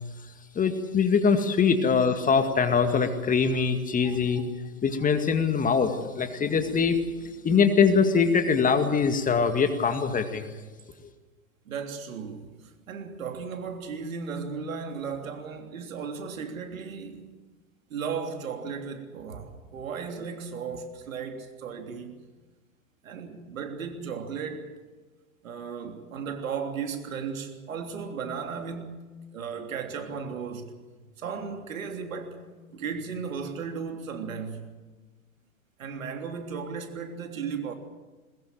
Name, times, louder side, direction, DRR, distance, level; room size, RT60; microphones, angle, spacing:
voice 1, 0.6-4.5 4.8-7.0 7.4-10.5, left 5 dB, 20° left, 2.1 m, -23 dB
voice 2, 11.6-17.3 17.9-22.2 23.0-24.7 25.4-30.8 31.2-34.8 35.8-37.7, right 6 dB, 70° right, 3.3 m, -35 dB
22.0 x 21.0 x 7.6 m
hypercardioid pair, 100°, 42 cm